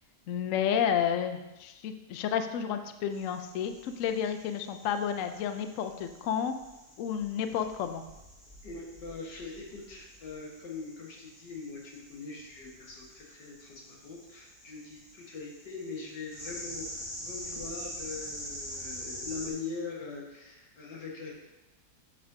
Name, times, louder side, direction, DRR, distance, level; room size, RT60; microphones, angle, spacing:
voice 1, 0.3-6.5 7.0-8.0, left 8 dB, 70° left, 8 dB, 0.8 m, -31 dB
sound 1, 3.1-19.5, equal, 20° left, 2.8 m, -46 dB
voice 2, 8.6-21.4, left 4 dB, 85° left, -3 dB, 2.1 m, -42 dB
8.6 x 6.4 x 2.7 m, 1.0 s
omnidirectional pair, 1.8 m